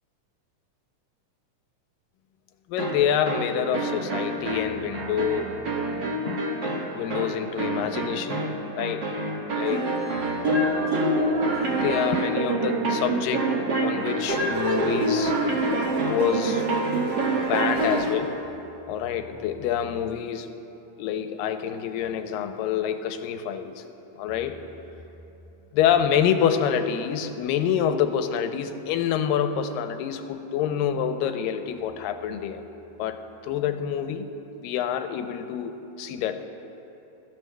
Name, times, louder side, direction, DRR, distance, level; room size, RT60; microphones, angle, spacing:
voice 1, 2.7-5.6 6.3-9.1 9.5-9.9 11.8-13.5 13.8-15.3 16.0-16.7 17.3-18.4 18.9-20.5 21.0-23.8 24.2-24.6 25.7-32.6 33.0-34.3 34.6-36.5, left 8 dB, 90° left, 8 dB, 2.3 m, -27 dB
Happy Tune, 2.8-18.3, right 2 dB, 55° right, 1.2 m, -26 dB
23.0 x 13.5 x 2.2 m, 3.0 s
omnidirectional pair, 3.9 m